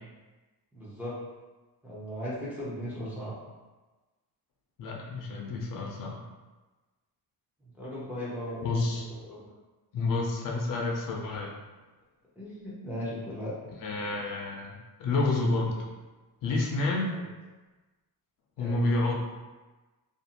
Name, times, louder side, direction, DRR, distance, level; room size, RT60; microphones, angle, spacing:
voice 1, 0.7-1.2 1.8-3.3 7.7-8.8 9.2-9.4 12.4-13.5 17.1-17.2 18.6-18.8, equal, 5° right, -8 dB, 0.4 m, -37 dB
voice 2, 4.8-6.2 8.6-9.1 9.9-11.5 13.8-15.8 16.4-17.2 18.6-19.2, left 2 dB, 55° left, -1 dB, 0.5 m, -29 dB
2.5 x 2.3 x 2.8 m, 1.2 s
cardioid pair, 175°, 39 cm